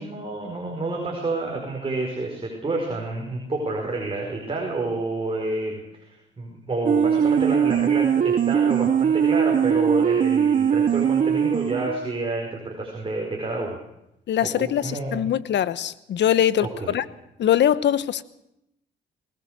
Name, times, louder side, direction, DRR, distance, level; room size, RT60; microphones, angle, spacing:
voice 1, 0.0-13.8 14.4-15.2 16.6-17.0, right 2 dB, 25° right, 0 dB, 5.1 m, -29 dB
sound 1, 6.8-12.1, right 8 dB, 45° right, 0.8 m, -21 dB
voice 2, 14.3-17.0 17.4-18.2, left 10 dB, 65° left, 16 dB, 1.0 m, -22 dB
21.0 x 19.0 x 6.6 m, 0.82 s
cardioid pair, 90°, 20 cm